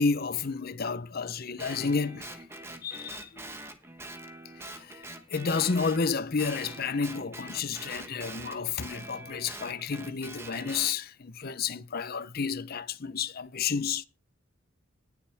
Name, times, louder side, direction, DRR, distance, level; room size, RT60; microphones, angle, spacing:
voice 1, 0.0-2.4 2.8-3.6 4.6-5.0 5.3-14.0, left 5 dB, 45° left, 0.7 m, -31 dB
Guitar, 1.6-6.0 6.4-11.0, right 2 dB, 10° right, 1.2 m, -44 dB
19.0 x 7.2 x 3.4 m
head